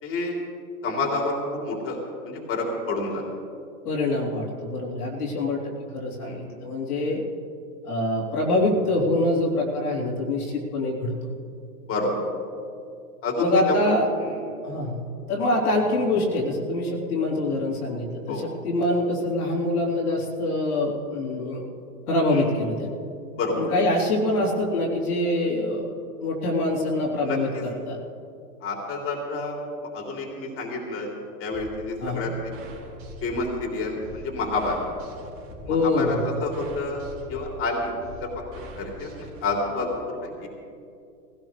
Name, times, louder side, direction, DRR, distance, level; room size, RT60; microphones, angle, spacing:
voice 1, 0.0-0.4 0.8-2.0 2.2-3.2 6.2-6.4 11.8-12.1 13.2-13.8 14.2-14.4 18.3-18.5 22.3-22.5 23.4-23.6 27.2-27.6 28.6-29.5 29.9-31.1 31.4-32.3 33.2-34.8 35.6-37.0 37.3-37.9 38.2-38.3 38.8-40.5, left 3 dB, 30° left, -1 dB, 3.3 m, -29 dB
voice 2, 3.8-5.6 5.9-7.2 7.8-11.3 13.4-14.1 14.6-15.0 15.3-21.7 22.1-23.0 23.5-25.9 26.2-28.0 32.0-32.3 35.7-36.2, left 2 dB, 75° left, -2 dB, 3.4 m, -25 dB
sound 1, 31.5-39.5, equal, 25° right, 3.0 m, -43 dB
19.0 x 16.5 x 3.3 m, 2.5 s
hypercardioid pair, 115°, 46 cm